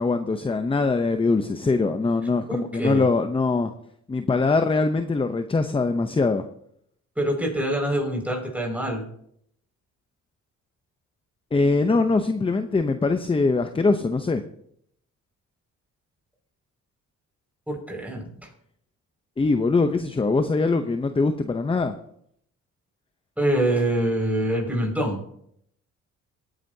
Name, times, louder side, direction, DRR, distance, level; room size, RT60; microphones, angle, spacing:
voice 1, 0.0-3.7 4.1-6.5 11.5-14.4 19.4-21.9, left 3 dB, 20° left, 8 dB, 0.7 m, -22 dB
voice 2, 2.5-3.1 7.2-9.0 17.7-18.5 23.4-25.2, right 1 dB, 5° right, 0 dB, 5.6 m, -25 dB
18.5 x 10.0 x 2.8 m, 0.70 s
cardioid pair, 90°, 30 cm